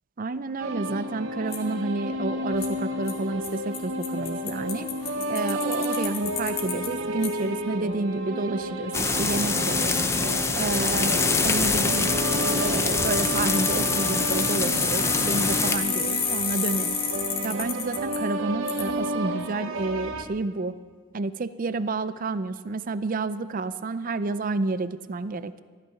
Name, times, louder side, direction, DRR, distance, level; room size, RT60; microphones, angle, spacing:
voice 1, 0.2-4.9 5.3-10.0 10.5-11.2 11.4-12.2 12.6-17.0 17.4-20.7 21.1-25.6, right 3 dB, 40° right, 14 dB, 0.5 m, -30 dB
sound 1, 0.6-20.2, equal, 70° right, 0.9 m, -31 dB
Bicycle, 1.5-1.6 2.6-2.7 3.1-3.2 3.4-3.5 3.7-6.9 7.2-7.3 9.3-9.4 9.7-18.2 18.7-18.8, left 7 dB, 45° left, 1.7 m, -30 dB
sound 2, 8.9-15.8, left 3 dB, 15° left, 0.5 m, -25 dB
14.0 x 11.5 x 5.8 m, 1.5 s
head